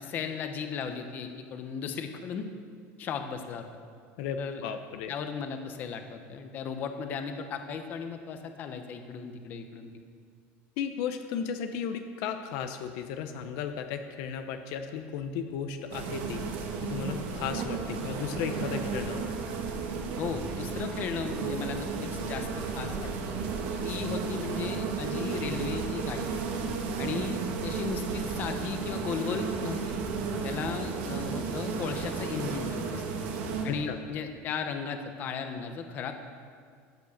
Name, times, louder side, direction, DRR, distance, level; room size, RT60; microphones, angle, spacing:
voice 1, 0.0-2.5 3.0-3.6 4.4-4.6 5.1-9.9 20.2-23.3 23.8-26.3 27.0-29.9 30.4-33.0 33.6-36.2, left 6 dB, 30° left, 7 dB, 0.9 m, -36 dB
voice 2, 4.2-5.1 10.8-16.4 16.8-19.3 33.7-34.0, left 7 dB, 55° left, 7 dB, 0.8 m, -35 dB
sound 1, 15.9-33.7, right 5 dB, 75° right, 2.2 m, -33 dB
13.0 x 9.2 x 7.3 m, 2.2 s
cardioid pair, 180°, 6 cm